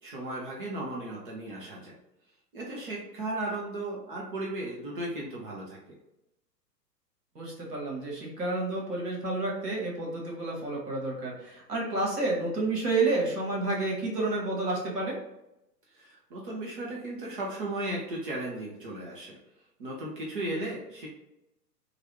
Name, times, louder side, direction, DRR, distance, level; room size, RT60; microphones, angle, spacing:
voice 1, 0.0-1.9 2.5-5.8 15.9-19.4 19.8-21.1, right 1 dB, 35° right, -3 dB, 0.7 m, -35 dB
voice 2, 7.3-15.1, right 2 dB, 65° right, -2 dB, 1.5 m, -30 dB
3.0 x 2.4 x 3.0 m, 0.86 s
figure-of-eight pair, 110°, 50 cm